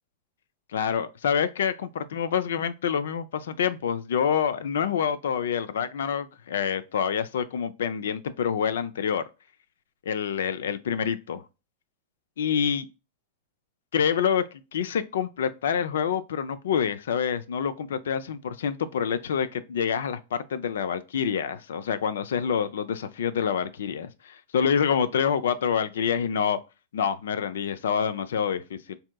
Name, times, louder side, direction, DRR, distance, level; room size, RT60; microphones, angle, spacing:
voice 1, 0.7-9.2 10.1-11.4 12.4-12.9 13.9-26.6 26.9-29.0, left 7 dB, 80° left, 0.4 m, -27 dB
3.4 x 2.8 x 2.2 m
hypercardioid pair, 120°, 0 cm